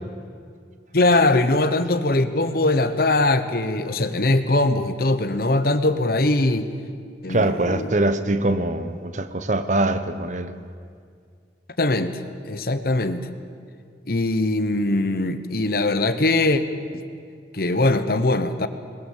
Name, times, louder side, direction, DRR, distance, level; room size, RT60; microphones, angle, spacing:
voice 1, 0.9-6.7 7.2-7.9 11.8-12.1 12.5-13.3 14.1-16.6 16.9-17.0 17.5-18.7, left 2 dB, 55° left, 11 dB, 1.1 m, -21 dB
voice 2, 7.3-10.5, right 2 dB, 40° right, 10 dB, 1.0 m, -23 dB
21.0 x 20.5 x 7.4 m, 2.2 s
head